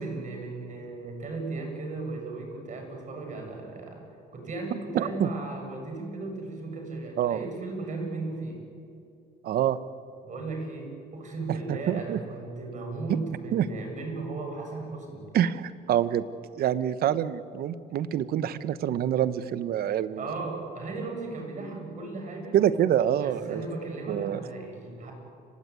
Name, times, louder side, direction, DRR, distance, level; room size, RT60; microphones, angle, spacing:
voice 1, 0.0-4.0 4.3-8.6 10.2-15.2 20.2-22.6 23.1-25.1, right 3 dB, 45° right, 2 dB, 7.0 m, -36 dB
voice 2, 4.9-5.3 7.2-7.5 9.4-9.8 11.7-12.2 13.1-13.2 13.5-13.7 15.3-16.2 16.6-20.3 22.5-23.6 24.1-24.4, right 10 dB, 65° right, 14 dB, 1.0 m, -26 dB
29.5 x 17.0 x 9.4 m, 2.5 s
cardioid pair, 110°, 17 cm